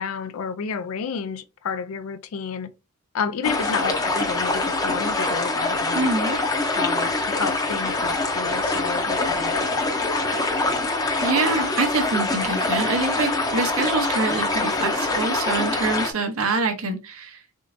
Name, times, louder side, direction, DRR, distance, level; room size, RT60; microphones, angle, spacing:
voice 1, 0.0-2.7 3.1-6.1 6.8-9.7, left 6 dB, 75° left, 0.4 m, -30 dB
sound 1, 3.4-16.1, left 2 dB, 15° left, 0.6 m, -24 dB
voice 2, 5.9-6.4 11.2-17.4, right 3 dB, 75° right, 0.8 m, -25 dB
3.8 x 3.6 x 2.6 m
head